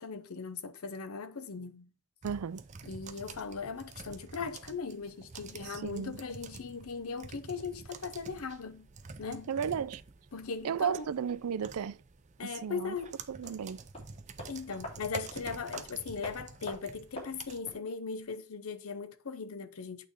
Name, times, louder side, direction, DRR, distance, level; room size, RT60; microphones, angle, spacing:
voice 1, 0.0-1.9 2.8-8.9 9.2-9.5 10.3-11.1 12.4-13.2 14.5-20.1, left 5 dB, 80° left, 0.7 m, -39 dB
sound 1, 2.2-17.6, right 4 dB, 30° right, 0.5 m, -48 dB
voice 2, 2.2-2.6 5.6-6.2 9.5-10.0 10.6-12.0 12.4-13.0 13.3-13.8, right 7 dB, 90° right, 0.4 m, -34 dB
sound 2, 12.9-17.9 18.2-18.3, left 1 dB, 25° left, 3.5 m, -48 dB
8.6 x 3.3 x 5.1 m
head